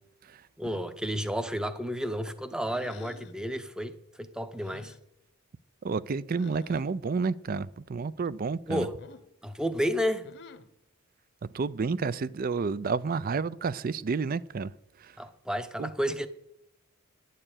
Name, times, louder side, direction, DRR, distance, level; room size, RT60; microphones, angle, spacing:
voice 1, 0.6-4.9 8.7-9.0 9.4-10.3 15.2-16.3, equal, 5° right, 0.7 m, -31 dB
sound 1, 2.7-3.4 4.6-5.0 6.4-6.8 9.0-9.3 10.2-10.8, left 4 dB, 55° left, 0.9 m, -50 dB
voice 2, 5.8-8.9 11.4-14.7 15.0-15.1 15.8-15.9, right 4 dB, 45° right, 0.4 m, -30 dB
11.0 x 6.7 x 8.9 m
head